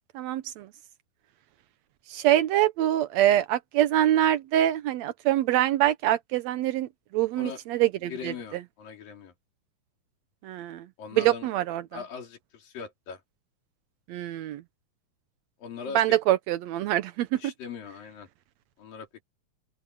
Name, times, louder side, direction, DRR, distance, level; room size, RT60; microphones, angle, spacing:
voice 1, 0.1-0.7 2.1-6.9 7.1-8.3 10.4-10.8 11.2-11.8 14.1-14.6 15.9-17.5, right 13 dB, 85° right, 1.5 m, -24 dB
voice 2, 8.1-9.3 11.0-11.5 11.9-13.2 15.6-16.2 17.4-18.3 18.8-19.2, left 6 dB, 75° left, 5.5 m, -40 dB
open air
omnidirectional pair, 4.0 m